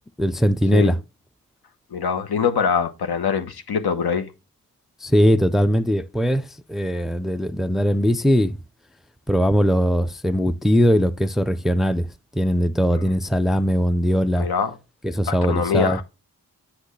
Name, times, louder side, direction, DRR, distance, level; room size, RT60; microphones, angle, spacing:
voice 1, 0.2-1.0 5.0-8.6 9.3-12.1 12.3-14.5 15.0-16.0, equal, ahead, 0.5 m, -20 dB
voice 2, 1.9-4.3 12.9-13.0 14.4-14.7 15.3-16.0, left 6 dB, 75° left, 1.2 m, -23 dB
8.1 x 6.0 x 3.2 m
cardioid pair, 55°, 38 cm